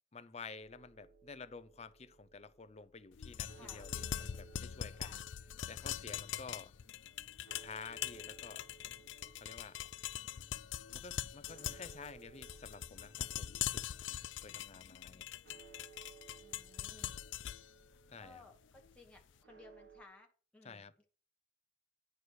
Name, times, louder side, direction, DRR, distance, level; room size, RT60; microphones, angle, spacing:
voice 1, 0.1-5.2 5.7-6.7 7.6-8.7 9.4-9.8 10.9-13.8 14.4-15.2 18.1-18.4 20.6-20.9, left 4 dB, 35° left, 0.6 m, -51 dB
sound 1, 0.6-20.0, right 6 dB, 65° right, 1.6 m, -62 dB
sound 2, 3.1-19.2, left 10 dB, 80° left, 0.4 m, -43 dB
voice 2, 3.5-3.9 4.9-5.2 16.4-17.1 18.2-21.0, left 3 dB, 5° left, 1.2 m, -59 dB
9.6 x 4.9 x 6.3 m
head